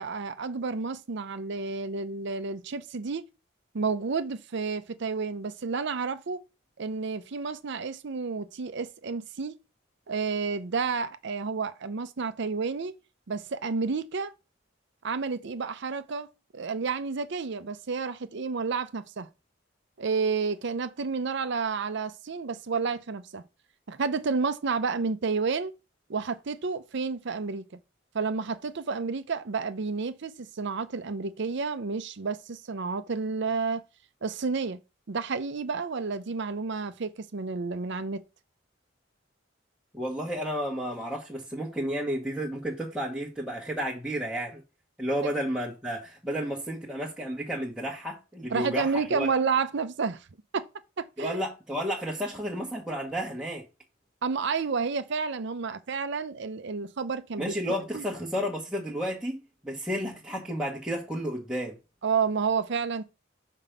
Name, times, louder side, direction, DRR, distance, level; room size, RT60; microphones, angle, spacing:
voice 1, 0.0-3.2 3.7-6.4 6.8-9.6 10.1-13.0 13.3-14.3 15.0-16.3 16.5-19.3 20.0-23.4 23.9-25.7 26.1-27.6 28.1-33.8 34.2-34.8 35.1-38.2 48.5-50.3 50.5-50.7 51.0-51.4 54.2-58.1 62.0-63.0, right 4 dB, 60° right, 0.6 m, -30 dB
voice 2, 39.9-44.6 45.0-49.3 51.2-53.6 57.4-61.8, equal, 5° right, 1.2 m, -32 dB
5.9 x 4.5 x 5.1 m
head